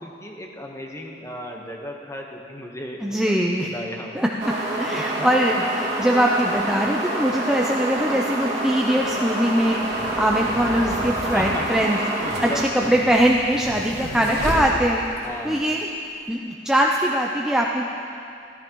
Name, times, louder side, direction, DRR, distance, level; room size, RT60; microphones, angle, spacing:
voice 1, 0.0-3.0 3.3-4.1 4.9-5.3 11.3-11.7 11.9-12.9 13.9-14.0 15.2-15.7, left 1 dB, 15° left, 0 dB, 1.1 m, -35 dB
voice 2, 3.0-3.7 4.1-4.5 4.8-9.8 10.2-12.0 12.4-15.0 15.4-15.9 16.3-17.9, equal, 5° right, -1 dB, 0.4 m, -21 dB
sound 1, 4.4-12.7, right 1 dB, 40° right, 2.1 m, -27 dB
sound 2, 8.9-15.3, equal, 60° right, 3.0 m, -33 dB
14.5 x 13.5 x 3.0 m, 2.5 s
head